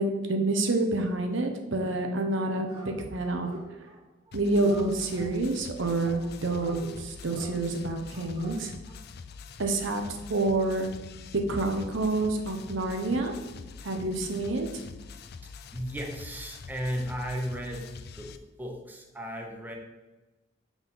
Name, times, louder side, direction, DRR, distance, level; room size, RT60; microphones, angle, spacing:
voice 1, 0.0-3.5 4.3-8.7 9.6-10.0 10.3-10.9 11.3-13.3 13.8-14.7, right 2 dB, 70° right, 4 dB, 0.8 m, -28 dB
Dog, 2.5-2.9 3.2-4.0 4.3-5.3 6.0-6.8 7.3-7.6 8.1-8.5 8.8-8.9, right 1 dB, 25° right, 1.2 m, -45 dB
sound 1, 4.3-18.4, left 5 dB, 55° left, 0.4 m, -45 dB
voice 2, 15.4-19.8, equal, 10° right, 1 dB, 0.7 m, -35 dB
4.8 x 4.0 x 5.4 m, 1.1 s
head